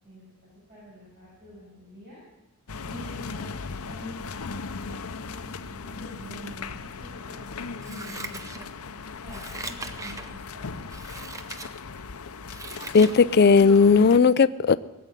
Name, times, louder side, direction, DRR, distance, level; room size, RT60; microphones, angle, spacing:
voice 1, 0.0-2.2 2.8-3.5 3.9-8.6 9.2-11.0, equal, 50° right, -7 dB, 6.3 m, -46 dB
sound 1, 2.7-14.2, left 4 dB, 75° left, 0.7 m, -38 dB
Scissors, 7.8-8.9 9.3-10.3 10.9-11.7 12.1-13.2 13.6-13.7, right 3 dB, 15° right, 0.8 m, -39 dB
voice 2, 12.9-14.7, left 5 dB, 45° left, 16 dB, 0.4 m, -16 dB
18.0 x 7.8 x 9.9 m, 1.0 s
head